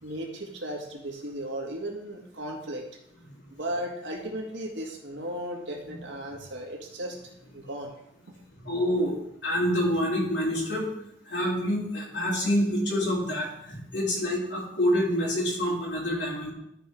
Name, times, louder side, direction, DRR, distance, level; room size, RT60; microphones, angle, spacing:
voice 1, 0.0-2.9 3.5-7.2 7.5-7.9, right 1 dB, 90° right, 1 dB, 1.9 m, -35 dB
voice 2, 8.6-10.9 11.3-16.5, equal, 85° left, -4 dB, 3.3 m, -27 dB
12.5 x 4.6 x 4.7 m, 0.78 s
head